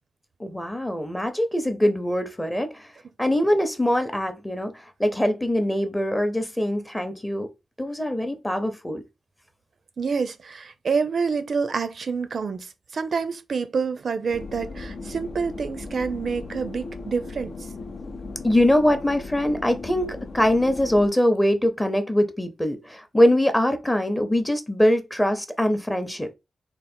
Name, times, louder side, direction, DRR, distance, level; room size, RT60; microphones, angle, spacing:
voice 1, 0.4-2.9 3.2-7.5 7.8-9.0 18.4-26.3, left 1 dB, 10° left, 0.7 m, -23 dB
voice 2, 10.0-17.5, right 5 dB, 60° right, 0.4 m, -27 dB
sound 1, 14.3-21.1, left 3 dB, 65° left, 0.5 m, -37 dB
3.7 x 2.1 x 4.2 m
wide cardioid pair, 115°, 0 cm